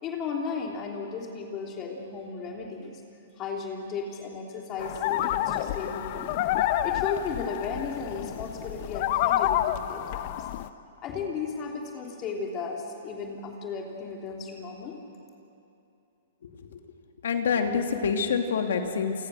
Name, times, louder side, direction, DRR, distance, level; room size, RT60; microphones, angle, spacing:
voice 1, 0.0-3.0 3.4-6.3 6.8-10.5 11.0-15.0, left 5 dB, 30° left, 0 dB, 3.1 m, -35 dB
sound 1, 4.8-10.7, left 13 dB, 50° left, 0.9 m, -28 dB
voice 2, 17.2-19.1, left 6 dB, 75° left, 5 dB, 2.5 m, -26 dB
28.5 x 24.5 x 6.5 m, 2.7 s
hypercardioid pair, 135°, 0 cm